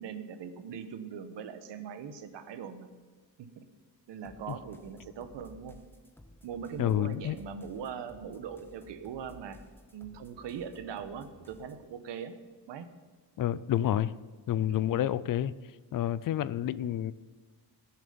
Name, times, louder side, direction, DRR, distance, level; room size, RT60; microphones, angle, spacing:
voice 1, 0.0-2.9 3.4-3.7 4.1-5.8 6.4-9.6 9.9-12.4 12.7-12.9 14.7-14.8, right 7 dB, 85° right, 10 dB, 1.3 m, -41 dB
sound 1, 4.2-11.9, left 1 dB, 5° left, 0.8 m, -56 dB
voice 2, 6.8-7.4 13.4-14.1 14.5-15.6 15.9-17.1, left 11 dB, 50° left, 18 dB, 0.5 m, -29 dB
19.5 x 7.4 x 5.2 m, 1.5 s
wide cardioid pair, 165°, 42 cm